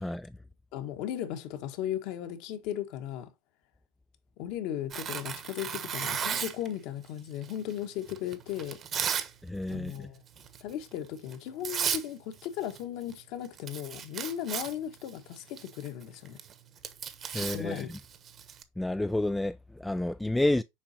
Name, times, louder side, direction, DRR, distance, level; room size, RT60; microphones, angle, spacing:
voice 1, 0.0-0.3 9.4-10.1 17.3-18.0 18.8-20.6, left 1 dB, 5° left, 0.3 m, -30 dB
voice 2, 0.7-3.3 4.4-8.8 9.7-10.2 10.6-16.4 17.3-17.9, left 11 dB, 60° left, 1.4 m, -36 dB
Tearing, 4.9-6.7 7.4-9.3 9.6-10.0 10.4-10.6 11.3-11.4 11.6-12.1 12.3-12.8 13.1-13.2 13.4-18.6, right 8 dB, 35° right, 1.1 m, -35 dB
7.2 x 4.8 x 2.8 m
hypercardioid pair, 90°, 0 cm